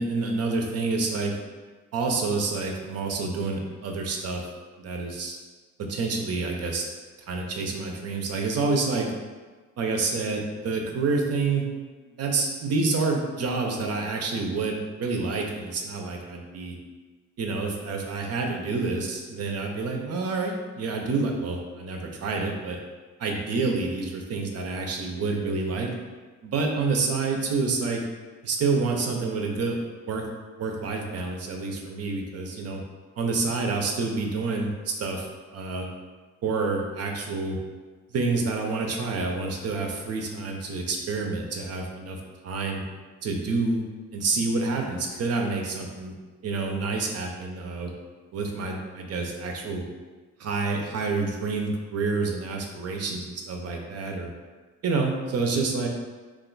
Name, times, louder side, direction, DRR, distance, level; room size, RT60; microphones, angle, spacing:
voice 1, 0.0-1.3 1.9-4.5 4.8-5.4 5.9-6.8 7.3-9.1 9.8-11.6 12.1-16.8 17.4-22.8 23.2-25.9 26.4-28.0 28.4-29.8 30.1-30.2 30.6-32.8 33.2-35.3 35.5-35.9 36.4-37.6 38.1-42.2 42.4-42.8 43.2-43.8 44.1-46.1 46.4-47.9 48.3-49.9 50.4-54.3 54.8-55.9, right 3 dB, 55° right, 2 dB, 0.6 m, -28 dB
2.5 x 2.2 x 3.8 m, 1.3 s
cardioid pair, 90°, 30 cm